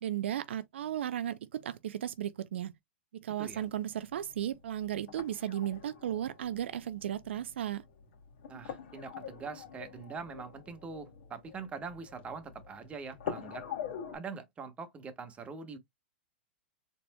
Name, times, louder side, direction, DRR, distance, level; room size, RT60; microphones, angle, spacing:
voice 1, 0.0-2.7 3.1-7.8, right 11 dB, 75° right, 0.4 m, -35 dB
sound 1, 3.5-14.2, left 8 dB, 65° left, 2.4 m, -46 dB
voice 2, 8.5-13.7 14.1-15.8, right 5 dB, 20° right, 1.2 m, -43 dB
4.2 x 4.1 x 2.2 m
hypercardioid pair, 125°, 6 cm